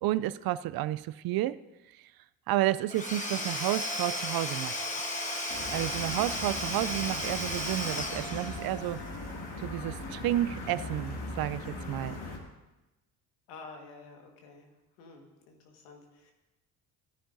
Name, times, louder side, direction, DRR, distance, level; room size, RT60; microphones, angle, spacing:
voice 1, 0.0-1.6 2.5-4.8 5.7-9.0 9.6-12.2, right 14 dB, 55° right, 16 dB, 0.5 m, -31 dB
Domestic sounds home sounds / Tools, 2.9-9.0, left 1 dB, 15° left, 1.6 m, -35 dB
sound 1, 3.6-10.0, right 8 dB, 35° right, 1.6 m, -48 dB
sound 2, 5.5-12.4, left 2 dB, 60° left, 2.5 m, -40 dB
voice 2, 13.5-14.7 15.0-16.3, left 4 dB, 85° left, 2 dB, 1.8 m, -50 dB
16.5 x 9.9 x 2.7 m, 1.0 s
hypercardioid pair, 65°, 45 cm